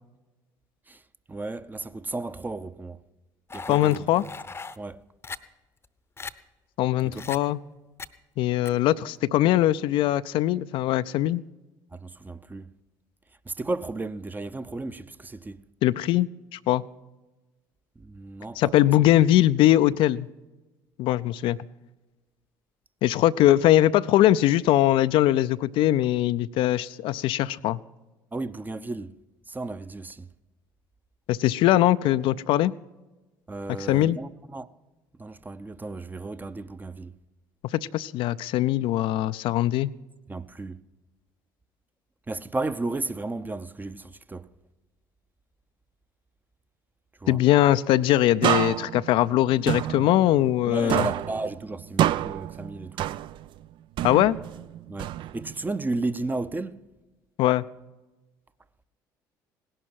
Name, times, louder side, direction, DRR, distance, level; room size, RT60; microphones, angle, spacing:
voice 1, 1.3-3.0 3.5-4.3 4.8-5.0 7.0-7.2 11.9-12.7 13.5-15.6 18.0-18.7 28.3-29.2 29.5-30.3 33.5-34.7 35.2-37.1 40.3-40.8 42.3-44.5 47.2-47.4 50.7-53.1 54.9-56.8, right 2 dB, 15° right, 0.7 m, -34 dB
sound 1, 3.5-4.8 5.2-5.4 5.8-5.9 6.2-6.3 7.1-7.4 8.0-8.1 8.7-8.8, left 4 dB, 25° left, 0.8 m, -38 dB
voice 2, 3.7-4.2 6.8-7.6 8.4-11.4 15.8-16.8 18.6-20.3 21.0-21.6 23.0-27.8 31.3-32.7 33.8-34.2 37.7-39.9 47.3-51.1 54.0-54.4 57.4-57.6, left 14 dB, 55° left, 0.4 m, -21 dB
sound 2, 48.4-50.6 50.9-53.6 54.0-55.6, right 12 dB, 50° right, 0.4 m, -28 dB
18.0 x 11.0 x 5.9 m
figure-of-eight pair, 55°, 10 cm